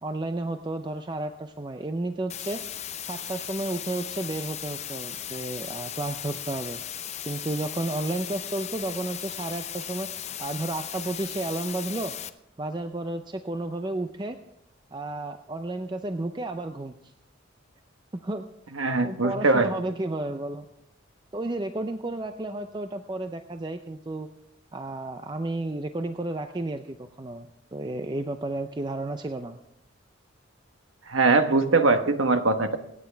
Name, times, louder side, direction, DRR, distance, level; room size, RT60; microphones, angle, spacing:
voice 1, 0.0-2.6 3.1-6.8 7.3-12.1 12.6-14.4 14.9-17.1 18.1-18.4 19.0-20.7 21.3-24.3 24.7-29.6, right 2 dB, 20° right, 7 dB, 0.5 m, -32 dB
sound 1, 2.3-12.3, left 10 dB, 35° left, 0.6 m, -37 dB
voice 2, 18.8-19.7 31.1-32.8, right 3 dB, 80° right, 7 dB, 1.2 m, -21 dB
26.0 x 9.1 x 3.4 m, 0.81 s
head